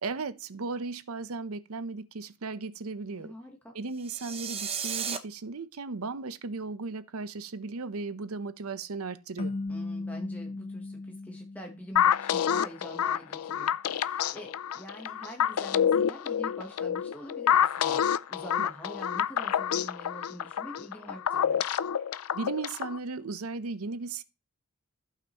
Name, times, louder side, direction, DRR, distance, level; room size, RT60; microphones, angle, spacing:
voice 1, 0.0-3.3 3.7-9.5 22.3-24.2, right 4 dB, 75° right, 0.7 m, -36 dB
voice 2, 3.2-3.7 9.7-21.6, equal, 5° left, 1.0 m, -45 dB
sound 1, 4.0-5.2, right 7 dB, 25° right, 0.7 m, -34 dB
sound 2, 9.4-12.5, left 2 dB, 30° left, 0.6 m, -37 dB
sound 3, 12.0-23.0, left 8 dB, 80° left, 0.4 m, -27 dB
15.0 x 5.8 x 3.0 m
head